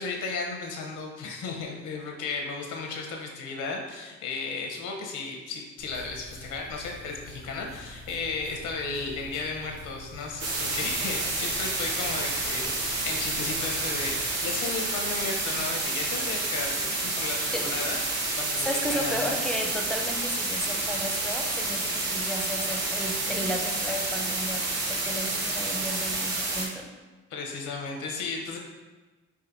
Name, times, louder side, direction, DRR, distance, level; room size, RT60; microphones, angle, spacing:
voice 1, 0.0-19.4 27.3-28.6, left 4 dB, 85° left, 1 dB, 0.7 m, -34 dB
sound 1, 5.8-14.2, left 1 dB, 85° right, 1.2 m, -46 dB
sound 2, 10.4-26.7, right 2 dB, 55° right, 1.0 m, -29 dB
voice 2, 18.6-26.9, equal, ahead, 2 dB, 0.4 m, -34 dB
4.8 x 2.6 x 2.6 m, 1.3 s
cardioid pair, 90°, 30 cm